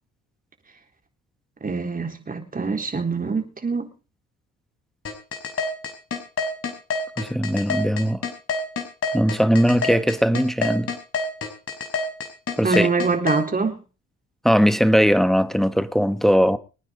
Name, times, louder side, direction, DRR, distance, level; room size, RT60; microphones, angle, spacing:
voice 1, 1.6-3.9 12.6-13.8, right 4 dB, 30° right, 3.9 m, -24 dB
sound 1, 5.0-13.4, left 3 dB, 45° left, 5.1 m, -26 dB
voice 2, 7.2-8.2 9.1-10.9 12.6-12.9 14.4-16.6, equal, ahead, 1.4 m, -19 dB
25.5 x 9.6 x 3.9 m
cardioid pair, 90°, 30 cm